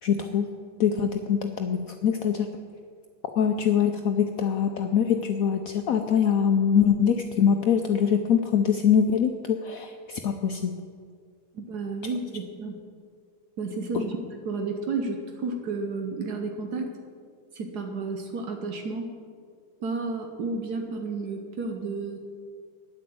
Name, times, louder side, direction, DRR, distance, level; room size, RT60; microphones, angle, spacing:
voice 1, 0.0-0.5 0.8-2.5 3.4-10.7 13.9-14.0, left 7 dB, 65° left, 5 dB, 1.0 m, -23 dB
voice 2, 11.5-12.8 13.6-14.2 14.4-16.9 17.5-19.1 19.8-22.2, right 3 dB, 70° right, 4 dB, 1.5 m, -31 dB
9.8 x 9.1 x 7.8 m, 2.2 s
omnidirectional pair, 1.8 m